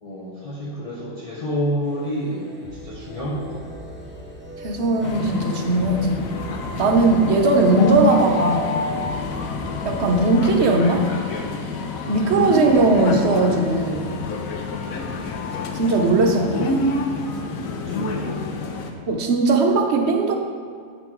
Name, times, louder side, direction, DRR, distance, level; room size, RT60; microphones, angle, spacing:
voice 1, 0.0-2.5 2.8-3.6 14.8-14.9 17.7-18.9, equal, 30° left, -7 dB, 0.9 m, -29 dB
sound 1, 1.8-10.3, equal, 10° right, 1.2 m, -38 dB
voice 2, 4.6-6.3 6.8-8.8 9.8-11.1 12.1-14.1 15.7-16.9 19.1-20.3, right 2 dB, 60° right, 2 dB, 1.0 m, -19 dB
sound 2, 5.0-18.9, left 3 dB, 85° left, 1.1 m, -28 dB
7.9 x 4.1 x 4.4 m, 2.1 s
omnidirectional pair, 1.4 m